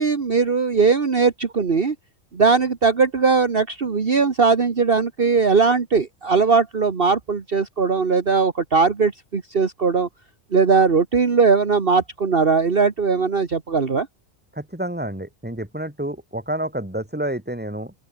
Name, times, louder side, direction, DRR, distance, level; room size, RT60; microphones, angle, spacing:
voice 1, 0.0-2.0 2.3-10.1 10.5-14.1, right 5 dB, 45° right, 1.7 m, -19 dB
voice 2, 14.5-17.9, right 1 dB, 5° right, 3.2 m, -29 dB
open air
omnidirectional pair, 1.4 m